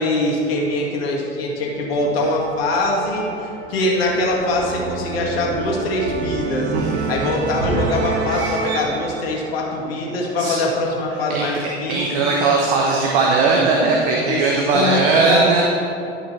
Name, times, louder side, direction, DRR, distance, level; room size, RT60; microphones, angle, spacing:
voice 1, 0.0-6.7 7.1-12.2 14.3-15.6, left 2 dB, 65° left, -2 dB, 1.9 m, -23 dB
sound 1, 1.5-10.5, right 3 dB, 70° right, 1.3 m, -28 dB
voice 2, 6.7-7.0 8.3-8.5 10.4-10.6 11.3-11.5 11.9-15.6, right 3 dB, 55° right, -1 dB, 1.1 m, -18 dB
11.5 x 5.6 x 4.2 m, 2.8 s
figure-of-eight pair, 80°, 32 cm